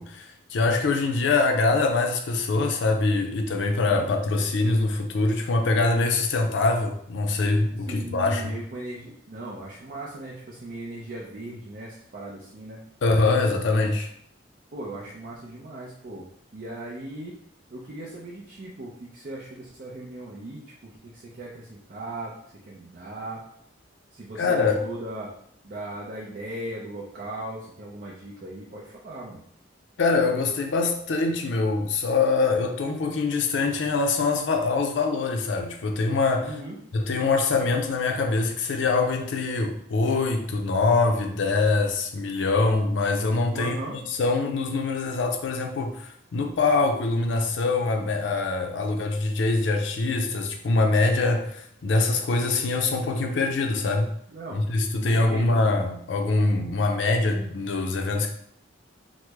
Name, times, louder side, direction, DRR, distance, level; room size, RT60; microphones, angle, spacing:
voice 1, 0.0-8.5 13.0-14.1 24.4-24.8 30.0-36.5 36.9-54.1 54.5-58.3, left 3 dB, 70° left, 0.4 m, -24 dB
voice 2, 7.9-12.8 14.7-16.3 16.5-17.4 17.7-22.3 22.7-23.4 24.1-25.3 25.6-29.4 36.4-36.8 43.5-44.0 54.3-54.6 55.0-55.6, right 1 dB, 50° right, 0.5 m, -38 dB
3.0 x 2.0 x 3.4 m
head